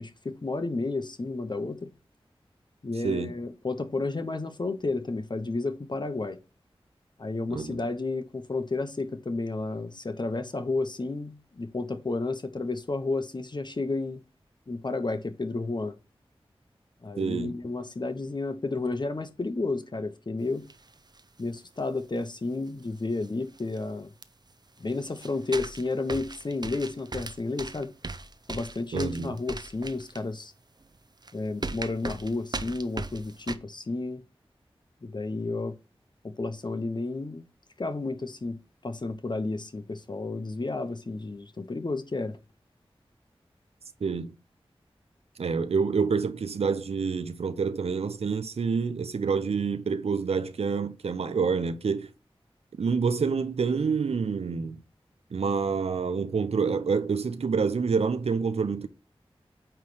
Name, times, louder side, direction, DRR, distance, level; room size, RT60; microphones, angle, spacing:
voice 1, 0.0-1.9 2.8-6.4 7.2-14.2 14.7-16.0 17.0-20.7 21.4-24.1 24.8-27.9 28.5-30.5 31.3-34.2 35.0-35.7 36.2-37.5 37.8-38.6 38.8-42.4, left 3 dB, 45° left, 0.9 m, -31 dB
voice 2, 17.2-17.6 28.9-29.3 44.0-44.3 45.4-52.1 52.8-54.8 55.3-58.9, right 5 dB, 85° right, 0.7 m, -27 dB
sound 1, 20.7-21.2 21.5-21.6 22.8-22.9 23.2-23.3 23.5-23.8 24.2-24.3 24.8-30.2 30.8-30.9 31.2-31.3 31.6-33.6, right 3 dB, 45° right, 0.7 m, -38 dB
8.9 x 3.3 x 6.1 m
cardioid pair, 40°, 10 cm